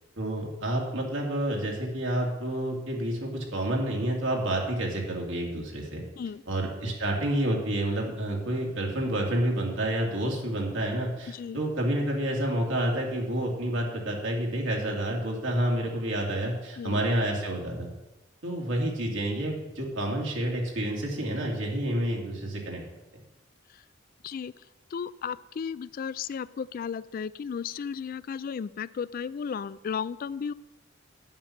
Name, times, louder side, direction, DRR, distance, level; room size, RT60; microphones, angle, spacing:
voice 1, 0.2-6.0 6.5-17.9 18.4-22.8, right 1 dB, 75° right, -1 dB, 2.4 m, -29 dB
voice 2, 11.3-11.6 16.8-17.0 23.7-23.8 24.2-24.5 24.9-30.5, left 6 dB, 45° left, 17 dB, 0.3 m, -34 dB
10.0 x 7.4 x 5.8 m, 1.0 s
head